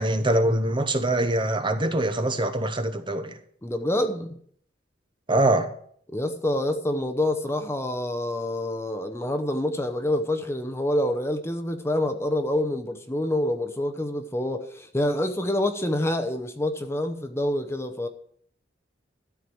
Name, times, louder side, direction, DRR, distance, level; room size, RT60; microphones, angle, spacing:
voice 1, 0.0-3.4 5.3-5.7, right 1 dB, 25° right, 0.9 m, -23 dB
voice 2, 3.6-4.3 6.1-18.1, left 1 dB, 15° left, 0.8 m, -27 dB
13.0 x 4.8 x 8.5 m
head